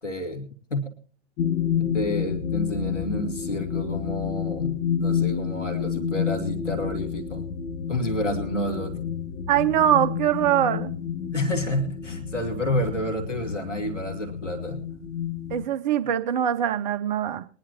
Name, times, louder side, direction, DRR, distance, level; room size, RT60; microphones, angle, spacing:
voice 1, 0.0-0.9 1.8-7.5 7.9-9.0 11.3-14.8, left 1 dB, 85° left, 2 dB, 2.4 m, -30 dB
sound 1, 1.4-15.7, left 8 dB, 40° left, 1.5 m, -29 dB
voice 2, 9.5-10.9 15.5-17.4, right 11 dB, 40° right, 10 dB, 0.7 m, -22 dB
22.0 x 10.5 x 2.9 m, 0.41 s
figure-of-eight pair, 105°, 36 cm